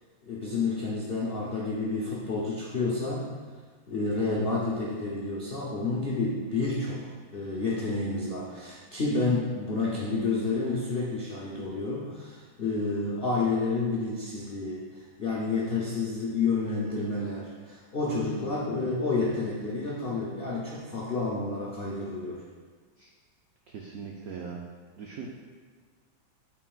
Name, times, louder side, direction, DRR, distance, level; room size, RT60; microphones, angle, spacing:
voice 1, 0.2-3.3 3.9-7.0 7.3-22.4, left 3 dB, 70° left, -5 dB, 0.5 m, -30 dB
voice 2, 23.7-24.7 25.0-25.3, right 6 dB, 80° right, -1 dB, 0.7 m, -40 dB
9.0 x 4.7 x 2.3 m, 1.6 s
omnidirectional pair, 2.2 m